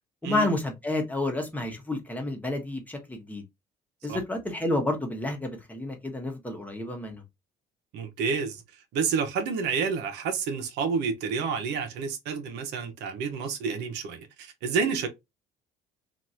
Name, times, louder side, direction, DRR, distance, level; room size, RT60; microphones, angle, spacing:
voice 1, 0.2-3.4 4.0-7.2, left 2 dB, 10° left, 1.0 m, -30 dB
voice 2, 7.9-8.6 8.9-15.1, right 5 dB, 85° right, 0.9 m, -29 dB
3.0 x 2.6 x 2.5 m
cardioid pair, 110°, 17 cm